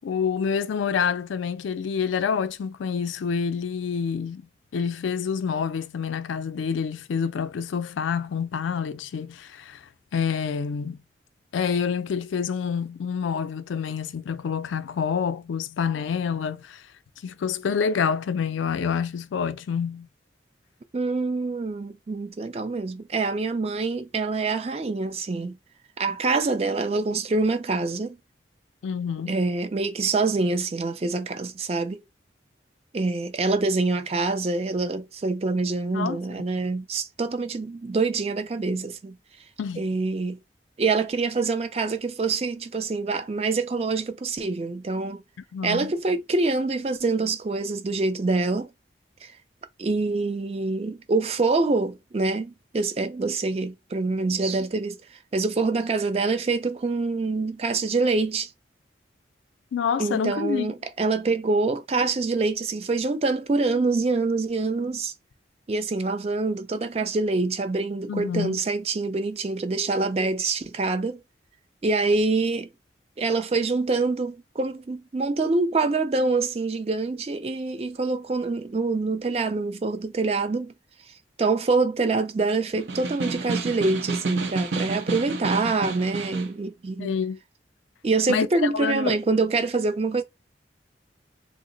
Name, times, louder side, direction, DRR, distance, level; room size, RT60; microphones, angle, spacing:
voice 1, 0.0-4.4 4.7-9.8 10.1-11.0 11.5-16.8 17.2-20.1 28.8-29.3 35.9-36.2 39.6-39.8 45.5-45.9 59.7-60.7 68.1-68.6 87.0-87.4 88.3-89.2, left 6 dB, 90° left, 0.4 m, -27 dB
voice 2, 20.9-25.6 26.0-28.2 29.3-32.0 32.9-39.2 39.8-40.4 40.8-45.2 45.6-48.7 49.2-49.3 49.8-58.5 60.0-65.1 65.7-71.2 71.8-72.7 73.2-80.7 81.4-87.1 88.0-90.2, right 3 dB, 35° right, 0.4 m, -25 dB
Snare drum, 82.7-86.6, right 3 dB, 85° right, 0.6 m, -30 dB
2.7 x 2.0 x 3.8 m
head